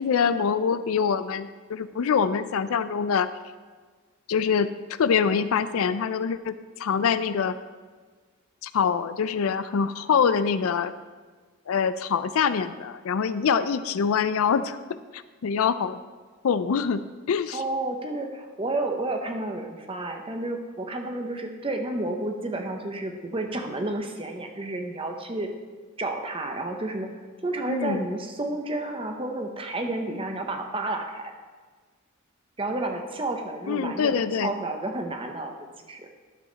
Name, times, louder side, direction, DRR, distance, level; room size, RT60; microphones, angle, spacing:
voice 1, 0.0-3.3 4.3-6.5 6.8-7.6 8.6-10.9 11.7-14.8 15.1-16.0 16.4-17.0 17.3-17.6 27.7-28.1 33.7-34.5, left 6 dB, 80° left, 13 dB, 0.4 m, -24 dB
voice 2, 17.5-25.5 26.0-27.1 27.4-31.3 32.6-35.5 35.9-36.1, right 2 dB, 25° right, 4 dB, 0.9 m, -31 dB
12.0 x 7.1 x 4.0 m, 1.5 s
head